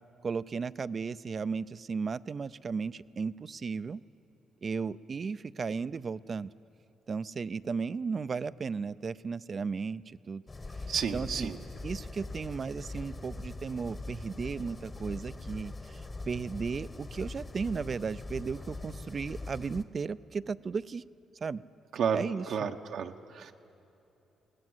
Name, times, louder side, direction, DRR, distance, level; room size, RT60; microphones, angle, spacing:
voice 1, 0.2-4.0 4.6-6.5 7.1-10.4 11.1-11.5 11.8-21.0 21.4-21.6 22.1-22.5, right 5 dB, 40° right, 17 dB, 0.4 m, -35 dB
sound 1, 10.5-19.8, left 2 dB, 25° left, 1.2 m, -42 dB
voice 2, 10.9-11.6 21.9-23.5, right 7 dB, 70° right, 4 dB, 0.9 m, -32 dB
20.5 x 18.5 x 7.9 m, 2.9 s
cardioid pair, 90°, 0 cm